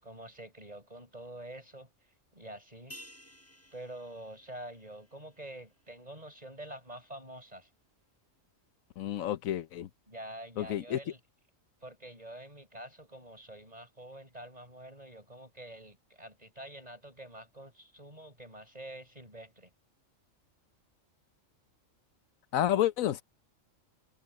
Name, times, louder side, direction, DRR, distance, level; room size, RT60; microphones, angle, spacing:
voice 1, 0.0-1.9 2.3-2.9 3.7-7.7 10.1-11.2 11.8-19.7, right 1 dB, 30° right, 7.8 m, -47 dB
sound 1, 2.9-7.6 7.9-8.0, equal, 10° left, 6.7 m, -56 dB
voice 2, 9.0-9.9 10.6-11.0 22.5-23.2, left 12 dB, 90° left, 1.2 m, -30 dB
omnidirectional pair, 1.4 m